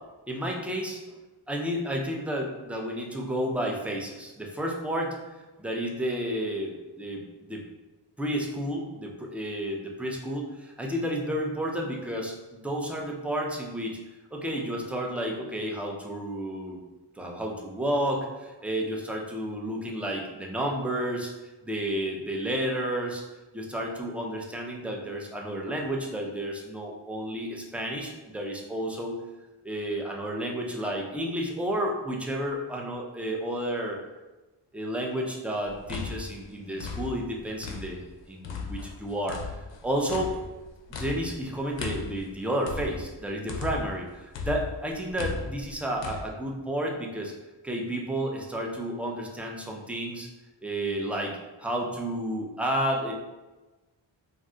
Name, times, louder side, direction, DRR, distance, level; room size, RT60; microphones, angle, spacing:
voice 1, 0.3-1.0 1.5-5.2 5.6-7.2 7.5-7.6 8.2-14.0 14.3-16.8 17.2-21.3 21.6-23.2 23.5-29.1 29.6-34.0 34.7-39.5 39.8-40.3 40.9-47.3 47.6-50.3 50.6-53.1, right 1 dB, 5° right, 0 dB, 0.4 m, -31 dB
sound 1, 35.7-38.1 38.4-44.0 44.3-46.2, left 5 dB, 70° left, 0.6 m, -36 dB
2.7 x 2.2 x 3.7 m, 1.1 s
cardioid pair, 70°, 46 cm